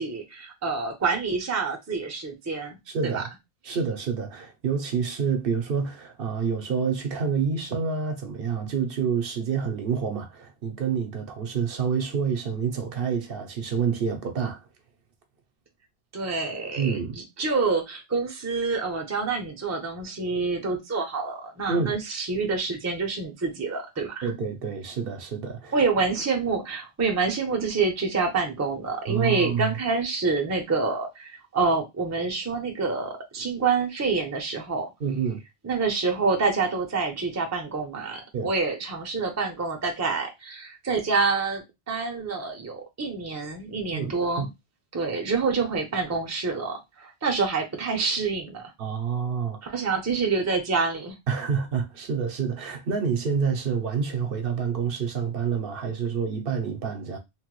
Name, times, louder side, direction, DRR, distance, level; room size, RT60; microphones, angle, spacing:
voice 1, 0.0-2.8 3.0-3.2 3.7-3.8 16.1-17.0 17.4-24.3 25.7-34.9 35.6-44.5 44.9-48.7 49.6-51.2, right 4 dB, 20° right, 0.5 m, -27 dB
voice 2, 2.9-3.3 3.7-14.6 16.8-17.2 21.7-22.0 24.2-25.7 29.1-29.8 35.0-35.4 38.3-38.5 43.9-44.5 48.8-49.8 51.3-57.2, right 6 dB, 65° right, 0.8 m, -28 dB
3.0 x 2.2 x 3.0 m
omnidirectional pair, 1.1 m